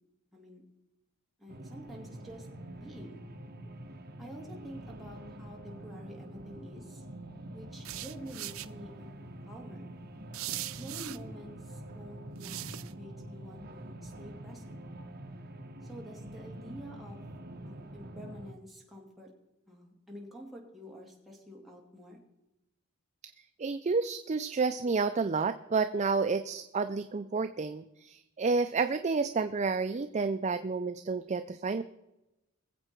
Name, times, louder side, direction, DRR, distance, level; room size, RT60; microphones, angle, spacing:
voice 1, 0.3-0.6 1.4-2.5 2.7-3.2 4.2-7.0 7.5-9.9 10.8-14.8 15.8-17.2 17.6-19.3 19.7-22.2, equal, ahead, -3 dB, 2.7 m, -48 dB
sound 1, 1.5-18.5, right 1 dB, 50° right, 1.1 m, -46 dB
sound 2, 7.8-8.7 10.3-11.2 12.4-12.9, right 15 dB, 85° right, 0.5 m, -39 dB
voice 2, 23.6-31.8, right 4 dB, 35° right, 9 dB, 0.4 m, -30 dB
21.5 x 7.7 x 4.5 m, 0.95 s
head